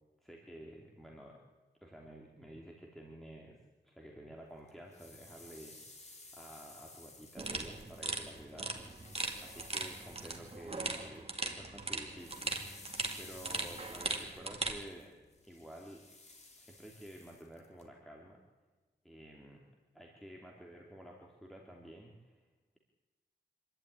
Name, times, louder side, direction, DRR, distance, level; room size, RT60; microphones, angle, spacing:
voice 1, 0.2-1.4 1.8-5.8 6.3-12.8 13.2-15.1 15.5-16.0 16.6-18.4 19.0-19.6 19.9-22.4, right 1 dB, ahead, -1 dB, 2.9 m, -51 dB
sound 1, 4.7-11.5 11.7-17.8, left 2 dB, 35° left, 3.1 m, -56 dB
sound 2, 7.4-14.8, right 2 dB, 35° right, 2.6 m, -39 dB
26.0 x 12.0 x 9.7 m, 1.2 s
wide cardioid pair, 110°, 19 cm